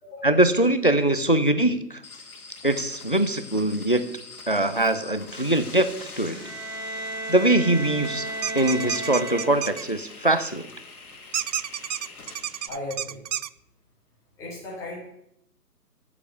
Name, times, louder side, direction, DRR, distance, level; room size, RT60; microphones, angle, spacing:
voice 1, 0.2-2.0 2.6-4.1 4.5-5.9 6.2-6.4 7.3-8.3 8.5-10.7, right 1 dB, 35° left, 11 dB, 0.4 m, -22 dB
sound 1, 2.0-12.7, left 3 dB, 60° left, 2.1 m, -44 dB
Bowed string instrument, 6.3-10.0, right 2 dB, 45° right, 2.2 m, -34 dB
sound 2, 8.4-9.8 11.3-13.5, right 9 dB, 90° right, 0.6 m, -30 dB
voice 2, 12.7-13.2 14.4-15.0, left 1 dB, 5° left, -6 dB, 2.3 m, -36 dB
9.4 x 7.0 x 6.7 m, 0.77 s
figure-of-eight pair, 155°, 49 cm